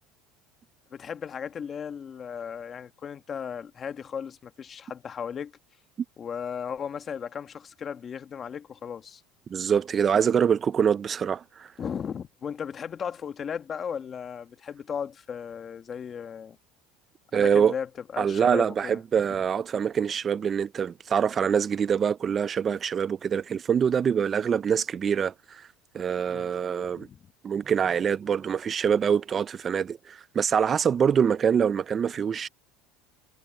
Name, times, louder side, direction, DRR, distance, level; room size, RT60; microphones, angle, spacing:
voice 1, 0.9-5.5 6.2-9.2 11.8-16.6 17.3-17.9 18.1-19.0 26.3-26.5 26.9-27.3, left 7 dB, 30° left, 1.4 m, -36 dB
voice 2, 9.5-11.7 17.3-17.7 18.2-25.7 25.9-27.1 27.4-32.5, right 7 dB, 30° right, 0.4 m, -25 dB
supercardioid pair, 135°, 0 cm